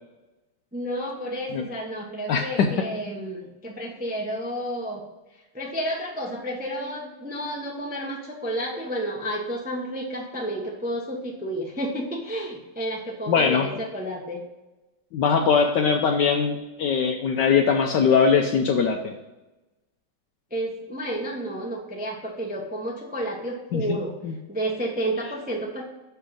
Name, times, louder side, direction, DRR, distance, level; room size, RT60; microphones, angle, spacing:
voice 1, 0.7-5.0 5.5-14.4 20.5-24.1 24.5-25.8, right 1 dB, 5° right, -1 dB, 0.7 m, -31 dB
voice 2, 2.3-2.8 13.3-13.7 15.1-19.1 23.7-24.3, left 6 dB, 70° left, 3 dB, 1.2 m, -21 dB
6.1 x 5.7 x 6.3 m, 1.0 s
omnidirectional pair, 2.2 m